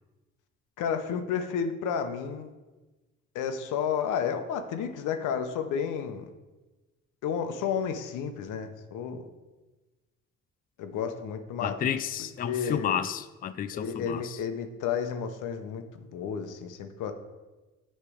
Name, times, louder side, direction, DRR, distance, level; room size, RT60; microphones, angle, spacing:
voice 1, 0.8-2.5 3.3-6.3 7.2-9.3 10.8-11.9 12.4-13.0 13.7-17.1, left 7 dB, 90° left, 8 dB, 0.8 m, -31 dB
voice 2, 11.6-14.4, left 9 dB, 30° left, 11 dB, 0.4 m, -31 dB
9.7 x 3.3 x 4.9 m, 1.2 s
cardioid pair, 90°, 30 cm